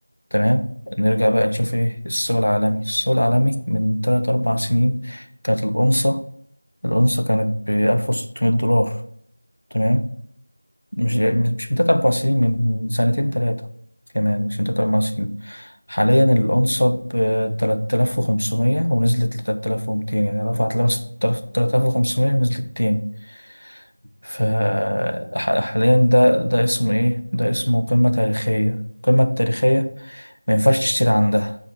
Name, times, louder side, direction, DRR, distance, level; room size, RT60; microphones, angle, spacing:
voice 1, 0.3-6.2 6.8-9.0 9.7-10.1 10.9-13.7 14.1-23.8 24.2-31.6, equal, 75° left, 8 dB, 0.8 m, -20 dB
6.9 x 4.5 x 4.4 m, 0.63 s
figure-of-eight pair, 175°, 0 cm